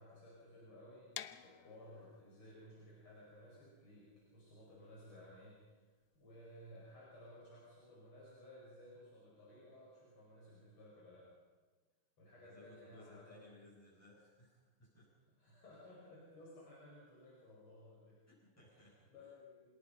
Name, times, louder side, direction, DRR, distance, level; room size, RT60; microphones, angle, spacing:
voice 1, 0.0-5.8 6.1-11.3 12.2-13.4 15.4-18.2 18.7-19.7, left 1 dB, 80° left, -6 dB, 6.5 m, -57 dB
sound 1, 1.1-6.9, left 10 dB, 65° left, 1.1 m, -54 dB
voice 2, 12.4-15.1 18.3-19.1, left 2 dB, 5° left, -9 dB, 7.1 m, -62 dB
27.5 x 18.5 x 5.7 m, 1.3 s
omnidirectional pair, 2.4 m